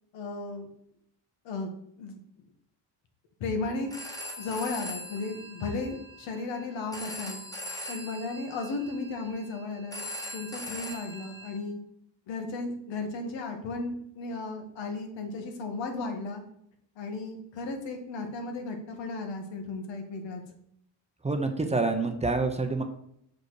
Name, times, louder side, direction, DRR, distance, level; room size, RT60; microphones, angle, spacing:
voice 1, 0.1-0.7 1.4-1.7 2.0-2.2 3.4-3.9 4.4-7.4 7.9-10.0 10.3-11.8 12.3-16.4 17.0-20.4, left 3 dB, 85° left, 4 dB, 1.6 m, -35 dB
Telephone, 3.7-11.6, left 1 dB, 10° left, 1.2 m, -41 dB
voice 2, 21.2-22.8, right 3 dB, 15° right, 6 dB, 0.7 m, -27 dB
6.4 x 5.2 x 4.8 m, 0.72 s
cardioid pair, 130°, 43 cm